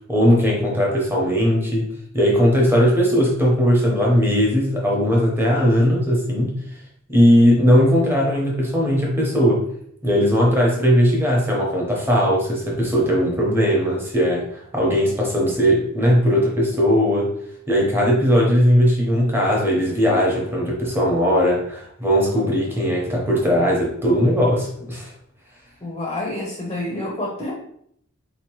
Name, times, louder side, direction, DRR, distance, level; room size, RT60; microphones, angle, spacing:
voice 1, 0.1-1.9 2.1-6.6 7.1-9.6 10.0-17.3 17.7-25.1, equal, 10° right, -3 dB, 0.8 m, -18 dB
voice 2, 25.8-27.5, left 1 dB, 20° left, -2 dB, 0.6 m, -28 dB
4.0 x 2.9 x 3.0 m, 0.69 s
head